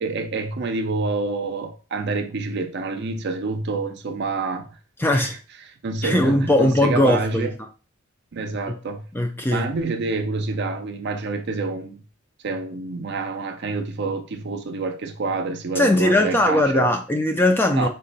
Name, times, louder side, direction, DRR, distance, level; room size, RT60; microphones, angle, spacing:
voice 1, 0.0-4.8 5.1-5.4 5.8-7.5 8.3-9.0 9.5-12.0 12.4-16.9 17.8-17.9, right 3 dB, 55° right, 0.5 m, -27 dB
voice 2, 5.0-5.4 6.0-7.5 8.7-8.8 9.1-9.7 15.8-17.9, left 1 dB, 10° left, 0.3 m, -19 dB
3.7 x 2.1 x 3.9 m
head